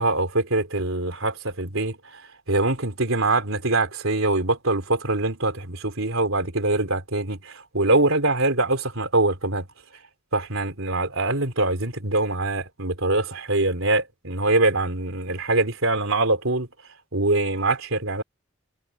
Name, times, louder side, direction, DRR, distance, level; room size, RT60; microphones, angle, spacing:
voice 1, 0.0-2.2 2.5-9.7 10.3-16.7 17.1-18.2, right 2 dB, 75° right, 3.8 m, -23 dB
head